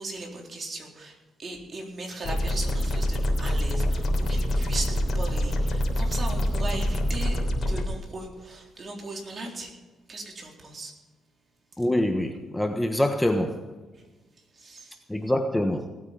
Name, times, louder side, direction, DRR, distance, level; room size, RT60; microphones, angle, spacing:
voice 1, 0.0-9.7 10.1-10.9 13.9-14.0 14.4-15.0, right 2 dB, 40° right, 1 dB, 3.9 m, -38 dB
sound 1, 2.2-7.8, equal, 50° left, 3.5 m, -25 dB
voice 2, 11.8-13.6 15.1-15.9, left 1 dB, 10° left, 5 dB, 1.2 m, -25 dB
18.5 x 9.1 x 5.3 m, 1.2 s
cardioid pair, 90°, 0 cm